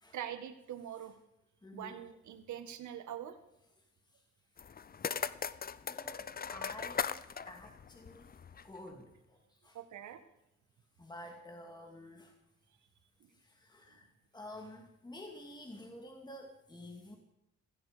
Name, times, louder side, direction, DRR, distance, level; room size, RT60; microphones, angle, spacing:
voice 1, 0.1-1.1 1.7-3.4 9.7-10.2 13.2-13.3, right 10 dB, 75° right, 8 dB, 1.8 m, -43 dB
voice 2, 1.6-2.0 4.1-4.2 5.0-5.1 5.8-9.8 11.0-12.3 13.3-14.1 14.3-17.2, left 1 dB, 15° left, 2 dB, 2.3 m, -50 dB
sound 1, 4.6-8.8, left 7 dB, 30° left, 0.6 m, -39 dB
16.5 x 15.5 x 5.2 m, 0.83 s
cardioid pair, 90°, 30 cm